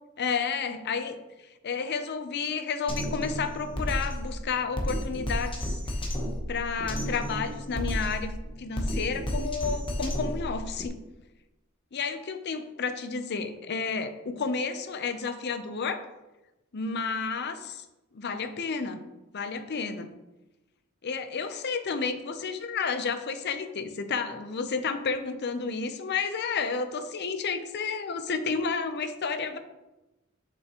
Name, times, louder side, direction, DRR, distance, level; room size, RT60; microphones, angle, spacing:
voice 1, 0.2-1.2 1.6-5.8 6.5-8.3 8.6-11.0 11.9-16.0 16.7-17.8 18.1-19.0 19.3-20.1 21.0-29.6, left 5 dB, 55° left, 9 dB, 0.6 m, -31 dB
Drum kit, 2.9-10.9, equal, 25° left, 1.0 m, -32 dB
7.0 x 5.6 x 2.9 m, 1.0 s
head